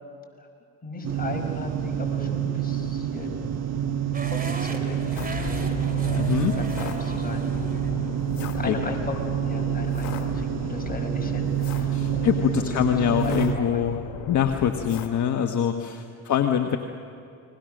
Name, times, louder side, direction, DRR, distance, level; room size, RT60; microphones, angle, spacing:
voice 1, 0.8-3.8 4.2-7.5 8.2-12.3 12.5-13.8 16.4-16.5, left 2 dB, 25° left, 2 dB, 5.4 m, -37 dB
sound 1, 1.0-13.6, right 9 dB, 40° right, 1.6 m, -28 dB
sound 2, 4.1-10.2, right 3 dB, 25° right, 3.0 m, -40 dB
sound 3, 5.1-15.1, left 9 dB, 70° left, 2.2 m, -37 dB
voice 2, 6.1-6.5 8.4-8.8 11.9-14.0 14.3-16.8, left 9 dB, 50° left, 5 dB, 1.4 m, -24 dB
29.5 x 21.0 x 6.5 m, 2.6 s
supercardioid pair, 65°, 37 cm